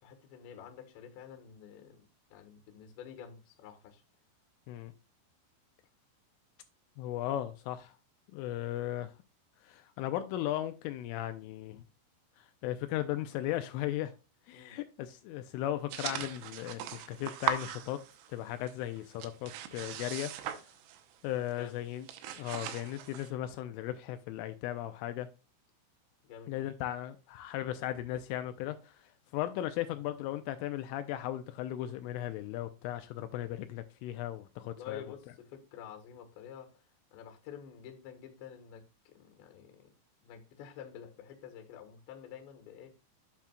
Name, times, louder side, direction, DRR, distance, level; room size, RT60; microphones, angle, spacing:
voice 1, 0.0-4.0 14.5-14.8 21.4-21.8 26.2-26.7 34.6-36.8 37.1-39.9 40.2-42.9, left 8 dB, 70° left, 3.4 m, -49 dB
voice 2, 7.0-7.9 8.3-9.1 9.6-11.8 12.4-14.1 14.5-18.0 18.3-20.3 21.2-22.1 22.4-25.3 26.5-35.0, left 13 dB, 85° left, 3.1 m, -36 dB
sound 1, 15.9-18.4 18.7-21.2 21.5-21.7 22.0-23.3, right 11 dB, 80° right, 3.2 m, -39 dB
8.8 x 8.4 x 2.3 m
omnidirectional pair, 5.8 m